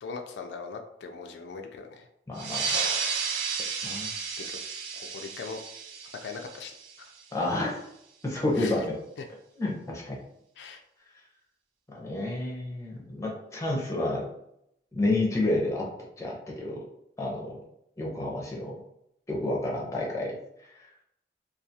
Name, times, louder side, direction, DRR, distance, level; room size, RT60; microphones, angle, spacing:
voice 1, 0.0-2.1 2.6-2.9 4.4-4.6 5.0-5.6 6.2-6.7 7.0-7.1 8.6-8.9 10.6-10.8, left 5 dB, 80° left, 5 dB, 0.3 m, -40 dB
voice 2, 2.3-2.8 3.8-4.1 7.3-7.8 8.2-8.9 9.6-10.2 11.9-14.3 14.9-15.9 16.2-16.8 17.2-17.6 18.0-18.7 19.3-20.4 20.7-20.9, left 2 dB, 15° left, -3 dB, 0.5 m, -30 dB
sound 1, 2.4-7.4, right 5 dB, 70° right, 0.4 m, -33 dB
2.3 x 2.3 x 2.7 m, 0.77 s
head